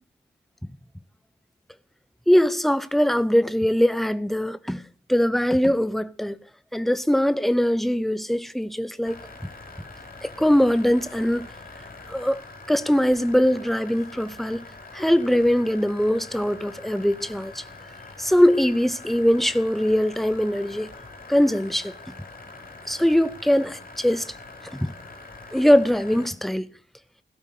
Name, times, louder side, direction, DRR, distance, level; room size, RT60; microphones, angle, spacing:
voice 1, 2.3-6.4 6.7-9.2 10.2-11.5 12.1-12.4 12.7-14.6 14.9-17.6 18.2-20.9 21.3-22.1 22.9-24.3 24.7-24.9 25.5-26.7, equal, ahead, 0.7 m, -21 dB
sound 1, 9.0-26.3, left 3 dB, 45° left, 6.7 m, -44 dB
16.5 x 12.5 x 6.6 m
wide cardioid pair, 145°, 20 cm